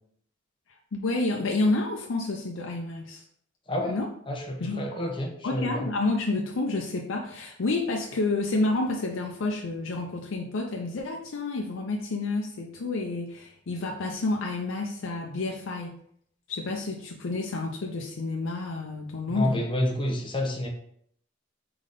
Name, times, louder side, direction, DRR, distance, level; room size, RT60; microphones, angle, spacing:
voice 1, 0.9-3.2 3.9-4.1 4.6-5.1 5.4-16.0 16.5-19.6, left 2 dB, 90° left, 1 dB, 0.6 m, -29 dB
voice 2, 4.3-5.9 19.3-20.7, left 1 dB, 25° left, 2 dB, 0.8 m, -29 dB
3.9 x 3.7 x 3.8 m, 0.66 s
head